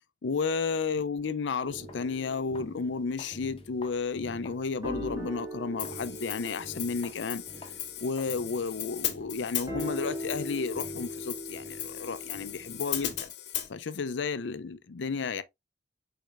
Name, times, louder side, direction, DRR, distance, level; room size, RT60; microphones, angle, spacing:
voice 1, 0.2-7.4 8.0-13.3 13.7-15.4, left 4 dB, 85° left, 0.5 m, -32 dB
sound 1, 1.6-13.2, equal, 20° right, 1.4 m, -41 dB
sound 2, 1.9-2.1 2.6-2.8 3.2-4.7 5.1-5.2 5.8-6.1 6.5-6.7 7.0-7.2 7.6-7.8 8.2-8.4 8.7-10.6, left 3 dB, 30° left, 0.8 m, -52 dB
Hi-hat, 5.8-13.7, left 11 dB, 65° left, 0.9 m, -37 dB
4.8 x 4.5 x 2.5 m
head